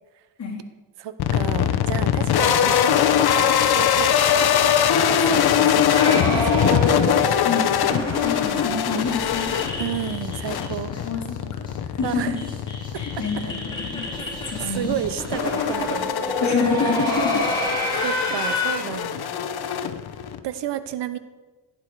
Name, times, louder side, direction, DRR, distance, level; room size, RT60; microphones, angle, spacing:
voice 1, 1.0-7.0 9.8-10.9 12.0-12.4 14.6-16.6 18.0-19.4 20.4-21.2, right 10 dB, 65° right, 13 dB, 0.8 m, -31 dB
sound 1, 1.2-20.4, left 9 dB, 55° left, 0.9 m, -22 dB
sound 2, 5.9-11.0 11.3-11.4 11.7-11.8 12.0-18.7, left 1 dB, 10° left, 3.8 m, -28 dB
voice 2, 7.4-9.6 10.9-11.7 12.0-12.4 12.9-14.0 14.4-14.9 16.4-17.4 17.9-18.2, left 5 dB, 35° left, -2 dB, 3.0 m, -28 dB
16.0 x 10.0 x 4.7 m, 1.3 s
cardioid pair, 145°, 46 cm